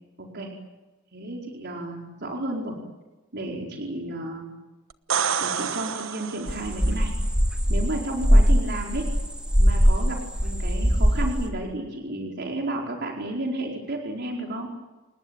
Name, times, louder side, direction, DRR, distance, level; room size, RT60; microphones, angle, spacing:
voice 1, 0.2-0.5 1.1-2.7 3.3-4.4 5.4-7.1 7.7-9.1 9.6-14.7, right 1 dB, 55° right, 0 dB, 4.8 m, -32 dB
sound 1, 4.9-6.8 10.6-10.7, right 7 dB, 75° right, 1.2 m, -28 dB
sound 2, 6.5-10.1 10.3-11.5, equal, 5° right, 3.0 m, -20 dB
29.0 x 20.0 x 9.1 m, 1.1 s
head